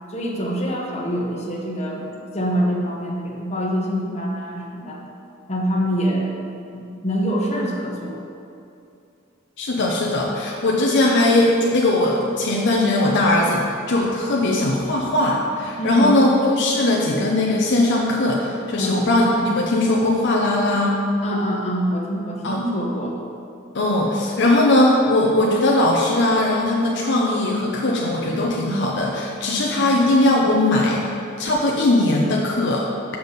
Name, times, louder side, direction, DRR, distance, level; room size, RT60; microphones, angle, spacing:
voice 1, 0.1-2.1 2.3-5.0 5.5-6.3 6.7-8.2 15.8-16.2 18.8-19.0 21.2-23.2 29.8-30.0, equal, 35° left, -2 dB, 1.1 m, -25 dB
voice 2, 9.6-21.0 22.4-22.6 23.7-32.9, left 1 dB, 60° left, -2 dB, 0.7 m, -19 dB
7.1 x 7.0 x 4.0 m, 2.6 s
head